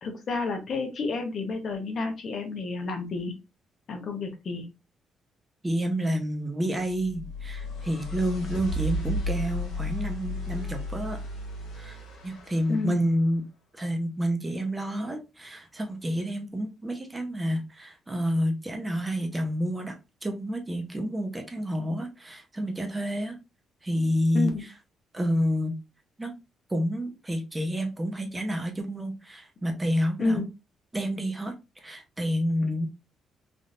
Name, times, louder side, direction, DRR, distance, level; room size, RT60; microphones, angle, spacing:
voice 1, 0.0-3.3 3.9-4.6 12.7-13.0 24.3-24.6 30.2-30.5, left 3 dB, 55° left, 0.9 m, -30 dB
voice 2, 5.6-11.2 11.7-13.4 13.7-20.0 20.2-23.4 23.8-24.5 25.1-25.8 26.2-26.3 26.7-30.4 30.9-32.9, equal, 15° right, 0.8 m, -29 dB
sound 1, 6.9-13.0, left 1 dB, 85° left, 1.4 m, -34 dB
3.5 x 2.6 x 2.5 m
cardioid pair, 90°, 0 cm